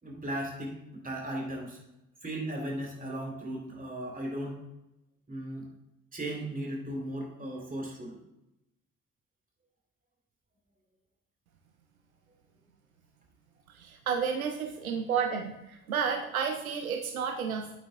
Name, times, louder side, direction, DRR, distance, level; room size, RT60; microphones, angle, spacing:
voice 1, 0.0-1.8 2.2-4.6 5.3-5.7 6.1-8.2, right 1 dB, 20° right, 0 dB, 3.1 m, -36 dB
voice 2, 13.7-17.7, right 6 dB, 85° right, 4 dB, 0.6 m, -31 dB
10.0 x 8.3 x 2.2 m, 0.88 s
figure-of-eight pair, 40°, 41 cm